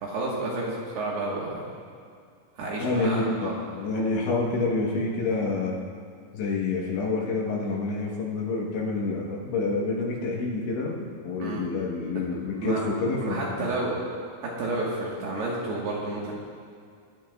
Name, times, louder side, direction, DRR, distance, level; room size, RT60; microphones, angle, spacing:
voice 1, 0.0-1.5 2.6-3.5 11.4-11.6 12.5-12.8 13.2-13.9 14.6-16.3, right 2 dB, 65° right, -5 dB, 2.9 m, -30 dB
voice 2, 2.8-5.8 6.3-13.8, left 3 dB, 70° left, -3 dB, 3.1 m, -28 dB
23.5 x 11.5 x 2.3 m, 2.2 s
omnidirectional pair, 5.9 m